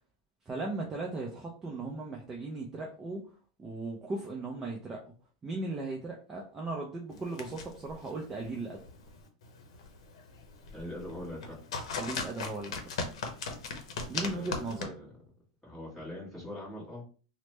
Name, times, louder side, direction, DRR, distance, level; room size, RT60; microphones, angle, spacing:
voice 1, 0.5-3.2 3.6-5.0 5.4-8.8 12.0-12.8 14.1-14.9, right 2 dB, 15° right, -1 dB, 0.5 m, -37 dB
sound 1, 7.1-14.8, left 4 dB, 85° left, 0.7 m, -39 dB
voice 2, 10.7-11.6 14.2-15.1 15.6-17.0, left 1 dB, 5° left, -6 dB, 1.4 m, -42 dB
3.1 x 2.1 x 3.1 m, 0.38 s
supercardioid pair, 150°, 3 cm